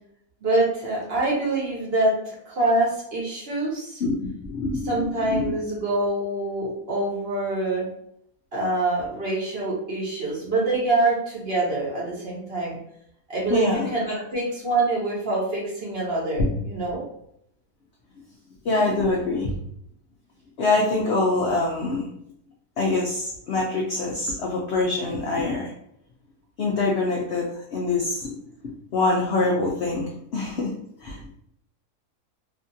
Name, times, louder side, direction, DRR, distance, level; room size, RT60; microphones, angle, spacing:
voice 1, 0.4-4.0 4.8-7.9 8.5-12.8 13.3-17.0, right 2 dB, 50° right, -5 dB, 0.7 m, -25 dB
voice 2, 4.4-5.5 13.5-13.9 16.4-16.5 18.6-19.5 20.6-22.1 22.8-25.7 26.6-28.3 28.9-30.7 31.0-31.3, left 2 dB, 85° left, -2 dB, 0.5 m, -24 dB
2.8 x 2.5 x 2.6 m, 0.74 s
omnidirectional pair, 1.7 m